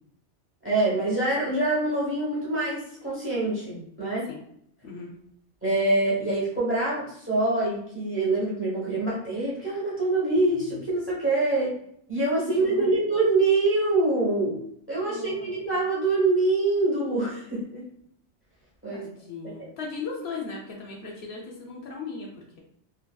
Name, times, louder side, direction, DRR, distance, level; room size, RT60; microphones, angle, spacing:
voice 1, 0.6-4.3 5.6-11.7 12.1-14.6 14.9-17.8 18.8-19.0 19.4-19.7, right 2 dB, 10° right, -6 dB, 0.9 m, -25 dB
voice 2, 12.4-12.9 15.0-15.5 18.9-22.6, left 4 dB, 70° left, -1 dB, 0.8 m, -37 dB
2.7 x 2.6 x 2.2 m, 0.71 s
omnidirectional pair, 1.2 m